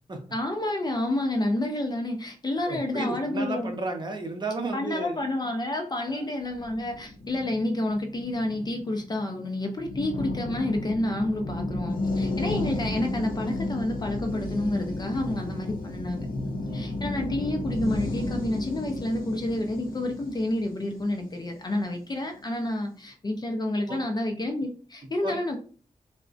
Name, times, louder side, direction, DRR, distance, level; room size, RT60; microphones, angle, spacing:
voice 1, 0.3-3.7 4.7-16.3 16.7-25.6, left 1 dB, 30° left, 0.4 m, -29 dB
voice 2, 2.7-5.2 6.1-6.3 16.7-17.0 23.9-24.0 25.2-25.4, right 2 dB, 30° right, 0.5 m, -33 dB
sound 1, 6.6-22.0, left 2 dB, 85° left, 0.5 m, -33 dB
2.5 x 2.0 x 2.3 m
wide cardioid pair, 115°, 14 cm